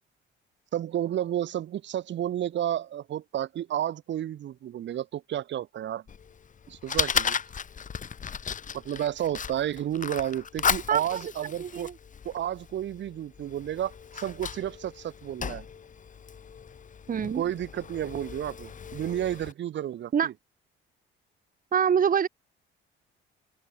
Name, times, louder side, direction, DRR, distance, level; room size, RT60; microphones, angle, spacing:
voice 1, 0.7-6.0 6.7-7.4 8.7-11.9 12.2-15.7 17.3-20.3, right 11 dB, 60° right, 2.5 m, -31 dB
Fire, 6.1-19.5, left 7 dB, 40° left, 2.0 m, -35 dB
voice 2, 10.9-11.2 11.6-11.9 17.1-17.4 20.1-20.3 21.7-22.3, right 7 dB, 40° right, 1.9 m, -25 dB
open air
cardioid pair, 100°, 21 cm